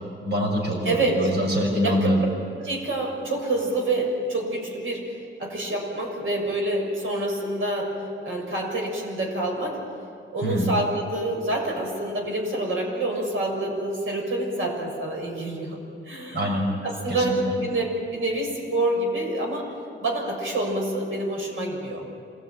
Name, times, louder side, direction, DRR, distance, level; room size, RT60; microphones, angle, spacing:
voice 1, 0.2-2.2 10.4-10.7 16.3-16.7 17.1-17.4, equal, 55° right, 0 dB, 6.3 m, -24 dB
voice 2, 0.8-1.3 1.8-2.2 2.5-5.1 5.4-8.0 8.2-9.8 10.3-15.8 16.0-16.4 16.8-19.7 20.0-22.1, right 2 dB, 85° right, 0 dB, 6.9 m, -27 dB
26.5 x 20.0 x 9.3 m, 2.3 s
wide cardioid pair, 140°, 21 cm